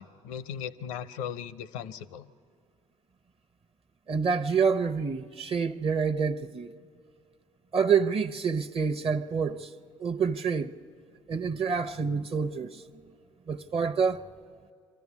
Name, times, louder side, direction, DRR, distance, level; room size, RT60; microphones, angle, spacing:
voice 1, 0.0-2.3, left 8 dB, 80° left, 0.6 m, -38 dB
voice 2, 4.1-6.7 7.7-9.7 10.0-10.7 11.3-12.8 13.5-14.3, right 6 dB, 40° right, 0.8 m, -27 dB
23.0 x 14.0 x 8.4 m
hypercardioid pair, 55°, 16 cm